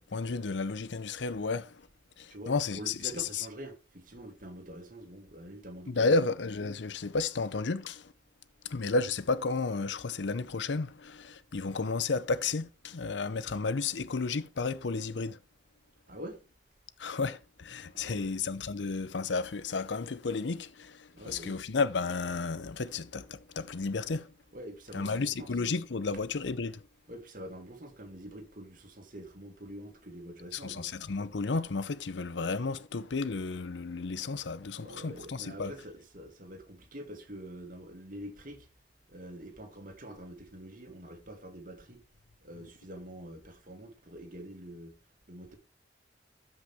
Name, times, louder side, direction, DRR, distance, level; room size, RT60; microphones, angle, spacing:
voice 1, 0.1-1.8 2.2-3.5 5.9-8.1 8.6-15.4 17.0-24.3 24.9-26.8 30.5-35.7, left 4 dB, 85° left, 0.7 m, -32 dB
voice 2, 2.3-6.3 16.1-16.4 17.9-18.4 21.1-21.6 24.5-25.5 27.1-30.9 34.7-38.7 39.1-42.0 42.4-45.0 45.3-45.6, right 1 dB, 50° right, 2.2 m, -46 dB
13.0 x 5.7 x 3.5 m
head